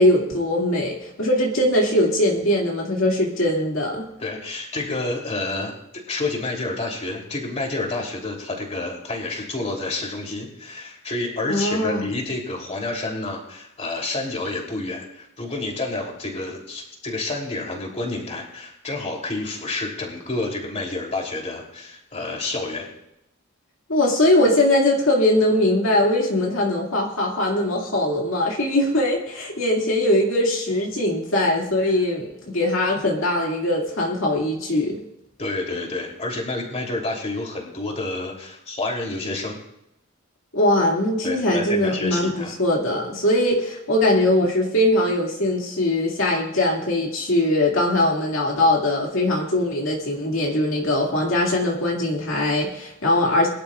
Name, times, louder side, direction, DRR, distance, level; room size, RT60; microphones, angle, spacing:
voice 1, 0.0-4.0 11.5-12.1 23.9-35.0 40.5-53.5, left 1 dB, 70° left, -2 dB, 2.3 m, -21 dB
voice 2, 4.2-22.9 35.4-39.6 41.2-42.5, left 2 dB, 30° left, 0 dB, 3.2 m, -29 dB
22.5 x 12.0 x 2.4 m, 0.85 s
head